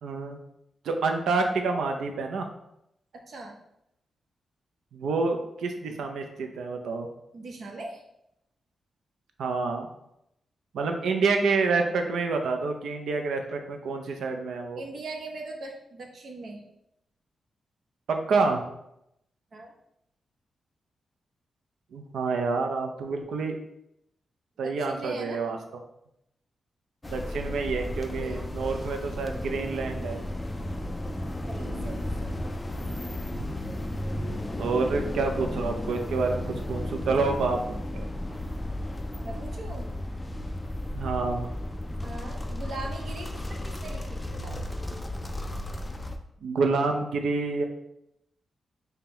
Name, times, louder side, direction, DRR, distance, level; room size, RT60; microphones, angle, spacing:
voice 1, 0.0-0.4 0.8-2.5 4.9-7.1 9.4-9.9 10.7-14.8 18.1-18.7 21.9-23.6 24.6-25.6 27.1-30.2 31.6-32.0 34.6-38.1 40.9-41.5 46.4-47.6, right 4 dB, 90° right, 4 dB, 0.5 m, -28 dB
voice 2, 3.1-3.6 7.3-8.0 14.7-16.6 19.5-19.7 24.6-25.4 28.1-28.9 31.5-32.4 39.2-39.9 42.0-44.6, right 2 dB, 55° right, 1 dB, 0.7 m, -40 dB
sound 1, 27.0-46.2, left 1 dB, 15° left, 0.3 m, -34 dB
5.3 x 2.2 x 2.9 m, 0.81 s
wide cardioid pair, 125°, 0 cm